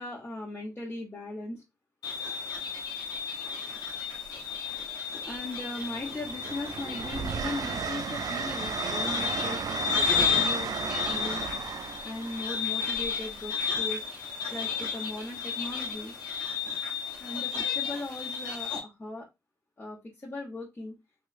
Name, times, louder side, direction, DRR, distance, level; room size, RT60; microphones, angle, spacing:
voice 1, 0.0-1.6 5.2-9.8 10.2-11.5 12.0-14.0 14.5-16.1 17.2-19.3 19.8-20.9, left 2 dB, 30° left, -4 dB, 1.0 m, -38 dB
sound 1, 2.0-18.8, left 6 dB, 90° left, 1.6 m, -32 dB
Train, 2.7-2.9 4.2-4.9 5.3-14.1 15.7-15.9, right 7 dB, 65° right, 0.3 m, -36 dB
3.1 x 3.1 x 2.5 m, 0.21 s
cardioid pair, 85°, 7 cm